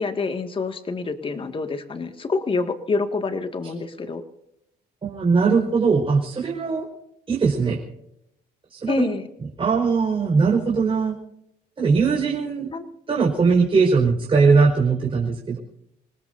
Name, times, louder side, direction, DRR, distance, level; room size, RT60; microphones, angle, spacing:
voice 1, 0.0-4.2 8.9-9.3 12.7-12.8, left 4 dB, 30° left, 7 dB, 2.0 m, -27 dB
voice 2, 5.0-6.8 7.3-7.8 8.7-9.1 9.6-11.1 11.8-12.7 13.1-15.6, right 4 dB, 30° right, -2 dB, 4.9 m, -20 dB
28.0 x 19.0 x 2.7 m, 0.78 s
cardioid pair, 110°, 17 cm